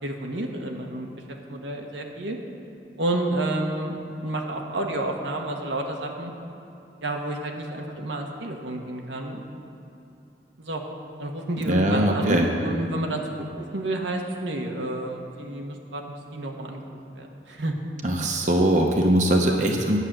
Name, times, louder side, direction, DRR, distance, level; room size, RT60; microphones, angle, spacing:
voice 1, 0.0-2.4 3.0-6.3 7.0-9.4 10.6-10.8 11.2-16.8 17.1-17.8, right 1 dB, 85° right, 1 dB, 1.3 m, -30 dB
voice 2, 11.7-12.5 18.0-20.0, right 1 dB, 40° right, 2 dB, 0.8 m, -21 dB
9.9 x 6.5 x 8.7 m, 2.9 s
head